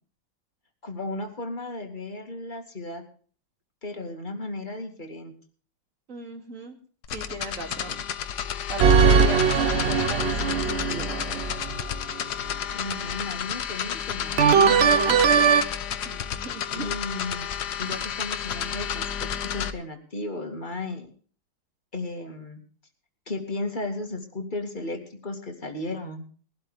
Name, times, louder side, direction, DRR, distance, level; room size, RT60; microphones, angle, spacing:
voice 1, 0.8-3.0 3.8-5.3 12.7-15.5 16.7-17.5 17.8-21.1 21.9-22.6 23.3-26.2, left 2 dB, 25° left, 4 dB, 2.4 m, -35 dB
voice 2, 6.1-6.8 7.1-8.0 8.3-11.5 16.0-16.9, equal, 40° right, 3 dB, 2.9 m, -37 dB
sound 1, 7.0-19.7, left 9 dB, 60° left, 1.4 m, -31 dB
sound 2, 8.8-11.8 14.4-15.6, right 6 dB, 70° right, 0.6 m, -20 dB
21.5 x 12.0 x 3.4 m, 0.43 s
omnidirectional pair, 2.2 m